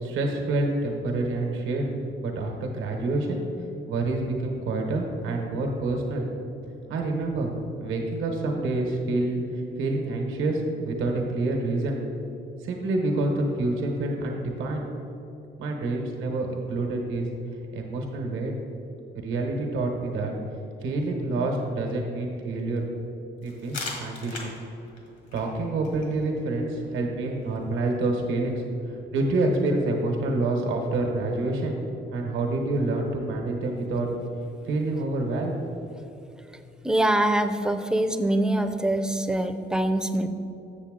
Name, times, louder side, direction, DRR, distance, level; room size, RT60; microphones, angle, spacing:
voice 1, 0.0-1.9 2.2-3.4 3.9-6.3 6.9-7.5 7.8-12.0 12.6-14.9 15.6-17.3 17.7-18.6 19.1-20.3 20.8-22.9 23.4-24.5 25.3-31.8 32.1-34.1 34.6-35.6, right 2 dB, 90° right, 1 dB, 1.0 m, -27 dB
sound 1, 23.4-28.9, left 3 dB, 70° left, 1.7 m, -42 dB
voice 2, 36.8-40.3, right 1 dB, 5° right, 7 dB, 0.4 m, -24 dB
7.0 x 7.0 x 3.7 m, 2.9 s
cardioid pair, 90°, 20 cm